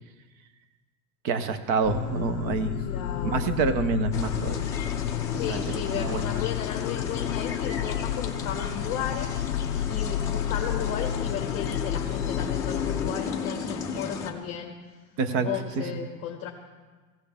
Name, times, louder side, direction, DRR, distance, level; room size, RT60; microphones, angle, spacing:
voice 1, 1.2-2.8 3.2-4.7 5.3-6.2 15.2-15.5 15.8-15.9, right 4 dB, 25° right, 10 dB, 0.6 m, -27 dB
sound 1, 1.8-13.1, left 10 dB, 50° left, 0.5 m, -31 dB
voice 2, 2.8-3.7 5.3-14.8 15.4-16.5, left 8 dB, 30° left, 0 dB, 1.1 m, -35 dB
sound 2, 4.1-14.3, left 6 dB, 5° left, 0.7 m, -34 dB
18.5 x 16.5 x 3.5 m, 1.3 s
supercardioid pair, 180°, 48 cm